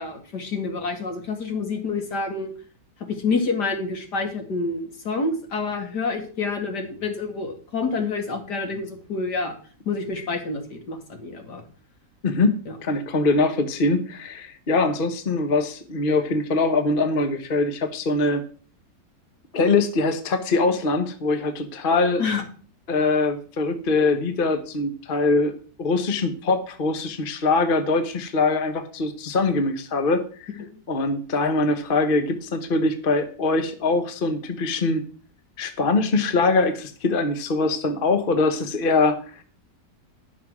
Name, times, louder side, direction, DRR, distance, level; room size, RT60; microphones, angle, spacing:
voice 1, 0.0-2.5 3.0-9.5 9.9-11.6 12.7-12.8 22.2-22.4 30.6-30.7, left 4 dB, 70° left, 4 dB, 2.7 m, -28 dB
voice 2, 12.2-18.4 19.5-22.2 22.9-25.5 25.8-30.5 30.9-35.0 35.6-39.2, left 3 dB, 35° left, 7 dB, 1.1 m, -23 dB
11.0 x 6.3 x 6.1 m, 0.42 s
omnidirectional pair, 1.9 m